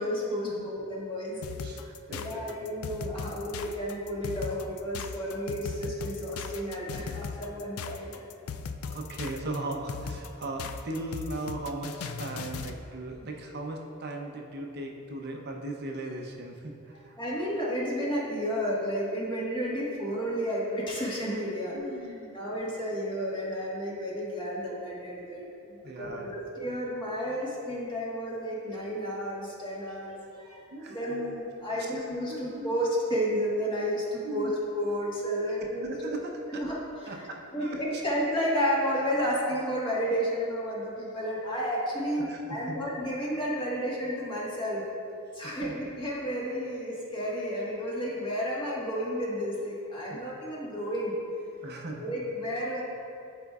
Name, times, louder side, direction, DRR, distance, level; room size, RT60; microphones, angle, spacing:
voice 1, 0.0-1.4 2.1-8.1 8.6-8.7 17.2-21.8 22.3-30.6 30.9-34.5 34.7-36.1 36.5-37.3 37.5-44.8 45.3-51.2 51.7-52.8, equal, 25° left, -6 dB, 1.4 m, -32 dB
sound 1, 1.4-12.8, left 6 dB, 85° left, 0.3 m, -38 dB
voice 2, 1.6-2.7 8.9-17.2 21.7-22.3 25.8-26.3 30.7-31.2 31.7-31.9 32.3-32.7 34.2-34.6 35.8-36.6 37.1-38.0 42.1-42.8 45.4-45.8 50.1-50.2 51.6-52.2, right 2 dB, 50° right, 2 dB, 0.7 m, -38 dB
11.5 x 4.5 x 2.4 m, 2.5 s
head